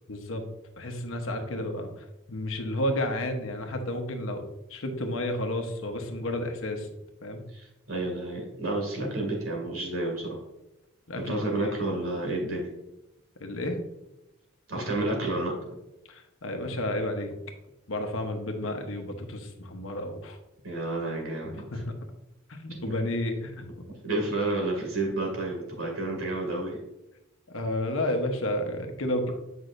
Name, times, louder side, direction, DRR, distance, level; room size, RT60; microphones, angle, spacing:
voice 1, 0.1-0.4 0.8-1.9 2.3-4.4 4.7-6.9 7.2-7.4 11.1-11.8 13.4-13.8 16.1-17.3 17.9-20.4 21.7-21.8 22.5-23.7 27.5-29.3, left 1 dB, 80° left, 4 dB, 1.0 m, -31 dB
voice 2, 7.5-10.4 11.3-12.7 14.7-15.5 20.6-21.8 24.0-26.8, right 2 dB, 85° right, 0 dB, 2.3 m, -30 dB
8.0 x 5.5 x 2.6 m, 0.93 s
head